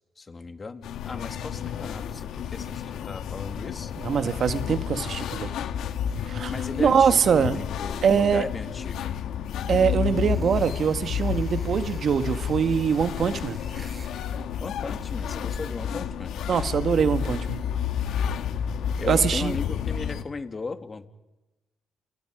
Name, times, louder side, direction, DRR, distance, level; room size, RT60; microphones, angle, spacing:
voice 1, 0.2-3.9 6.5-9.1 14.6-16.4 19.0-21.1, left 4 dB, 35° left, 7 dB, 2.6 m, -36 dB
sound 1, 0.8-20.2, left 8 dB, 75° left, 1.7 m, -31 dB
voice 2, 4.0-5.5 6.3-6.5 6.8-7.6 8.0-8.4 9.7-13.6 16.5-17.6 19.0-19.6, right 7 dB, 60° right, 9 dB, 1.8 m, -23 dB
sound 2, 10.2-14.2, right 3 dB, 35° right, 6.9 m, -51 dB
30.0 x 29.5 x 5.0 m, 1.0 s
supercardioid pair, 60°, 0 cm